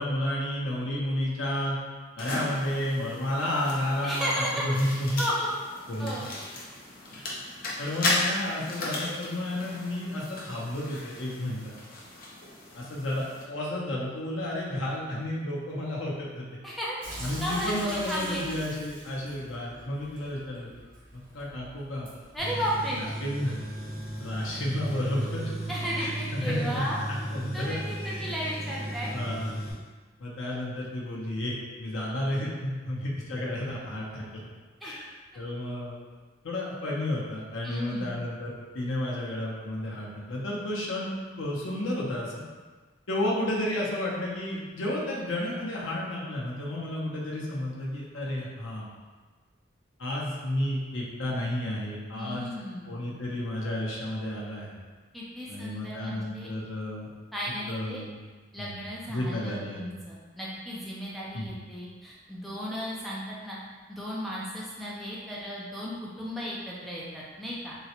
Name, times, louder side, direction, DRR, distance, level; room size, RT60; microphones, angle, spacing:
voice 1, 0.0-1.8 2.2-5.2 5.9-6.2 7.8-11.7 12.7-16.5 17.2-20.7 21.1-22.1 22.9-23.5 24.2-25.5 26.0-27.8 28.0-28.2 29.1-29.6 30.2-34.3 34.8-35.1 35.3-36.0 36.4-41.1 41.4-42.4 43.1-48.9 50.0-52.5 52.8-54.8 55.5-57.1 57.7-58.2 58.6-58.8 59.1-59.9 61.3-61.5, left 1 dB, 85° left, -4 dB, 0.7 m, -31 dB
sound 1, 2.2-13.4, left 2 dB, 45° left, 0.6 m, -36 dB
voice 2, 4.0-4.6 5.2-5.5 6.0-6.3 16.6-17.0 17.4-18.4 22.3-23.0 25.7-27.0 27.5-29.2 34.8-35.0 37.6-38.2 52.2-53.0 55.1-56.5 57.3-58.0 58.5-63.6 63.9-67.8, equal, ahead, -6 dB, 0.3 m, -34 dB
Sink (filling or washing) / Drip, 17.0-25.9, right 1 dB, 80° right, 0.8 m, -44 dB
Tools, 22.4-29.7, right 1 dB, 55° right, 1.3 m, -36 dB
3.7 x 2.1 x 2.8 m, 1.4 s
head